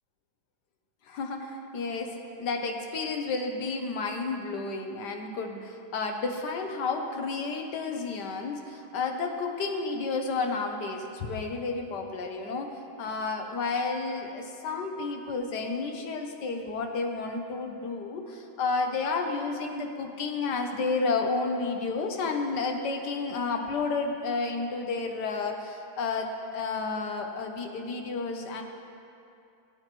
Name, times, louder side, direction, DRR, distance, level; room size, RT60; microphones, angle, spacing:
voice 1, 1.1-28.6, left 4 dB, 60° left, 3 dB, 1.3 m, -31 dB
18.0 x 8.7 x 3.1 m, 2.6 s
omnidirectional pair, 2.3 m